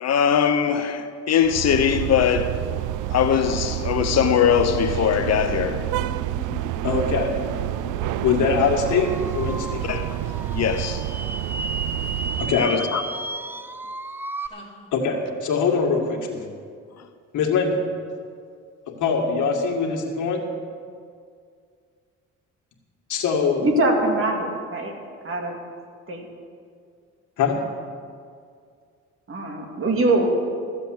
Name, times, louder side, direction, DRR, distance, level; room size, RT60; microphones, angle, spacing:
voice 1, 0.0-2.6 3.1-5.9 9.8-10.2 10.5-11.1 12.5-13.0, left 8 dB, 60° left, 0.8 m, -21 dB
sound 1, 1.4-12.7, right 14 dB, 90° right, 0.5 m, -28 dB
sound 2, 3.9-8.8 9.8-9.9 10.2-10.3 10.6-10.8 11.1-11.2 14.5-15.0, left 3 dB, 15° left, 2.5 m, -41 dB
voice 2, 6.8-7.3 8.0-9.8 12.4-12.7 14.9-16.4 17.3-17.8 18.9-20.5 23.1-23.7 27.4-27.6, left 5 dB, 80° left, 2.0 m, -23 dB
sound 3, 8.8-14.5, right 2 dB, 5° right, 0.4 m, -34 dB
voice 3, 23.6-24.9 25.2-25.6 26.1-26.3 29.3-30.3, right 2 dB, 45° right, 2.4 m, -22 dB
14.5 x 7.7 x 7.7 m
cardioid pair, 90°, 30 cm